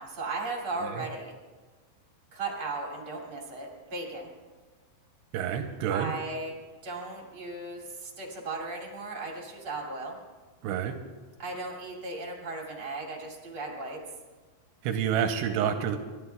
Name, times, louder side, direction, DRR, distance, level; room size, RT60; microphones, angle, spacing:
voice 1, 0.0-1.3 2.3-4.3 5.9-6.6 6.8-10.2 11.4-14.0, right 3 dB, 35° right, -1 dB, 2.6 m, -36 dB
voice 2, 5.3-6.1 10.6-11.0 14.8-16.0, right 8 dB, 80° right, 5 dB, 2.8 m, -28 dB
29.5 x 13.0 x 2.3 m, 1.3 s
omnidirectional pair, 5.2 m